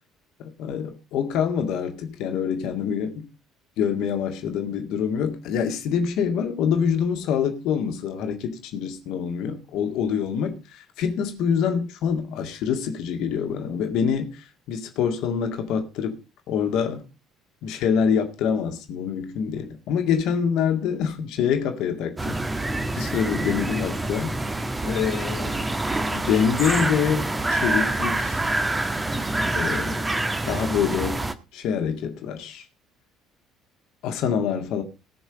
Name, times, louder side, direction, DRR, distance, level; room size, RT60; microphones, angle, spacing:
voice 1, 0.4-3.3 3.8-16.2 16.5-17.0 17.6-22.4 22.9-24.4 24.8-25.7 26.1-28.4 29.6-30.1 30.5-31.2 31.5-32.6 34.0-34.8, left 7 dB, 55° left, 2.0 m, -26 dB
sound 1, 22.2-31.3, right 2 dB, 15° right, 1.4 m, -26 dB
18.5 x 6.3 x 5.0 m
figure-of-eight pair, 55°, 0 cm